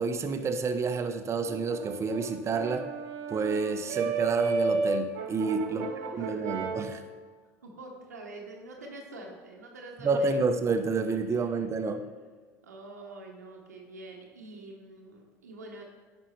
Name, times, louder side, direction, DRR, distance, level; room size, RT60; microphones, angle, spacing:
voice 1, 0.0-2.9 3.3-5.8 6.1-7.0 10.0-12.0, right 4 dB, 35° right, 7 dB, 0.8 m, -29 dB
Brass instrument, 1.5-6.9, right 4 dB, 65° right, 0.9 m, -32 dB
voice 2, 5.6-6.7 7.6-10.6 12.6-15.9, right 2 dB, 90° right, 0 dB, 0.9 m, -45 dB
9.7 x 5.3 x 3.2 m, 1.5 s
hypercardioid pair, 70°, 9 cm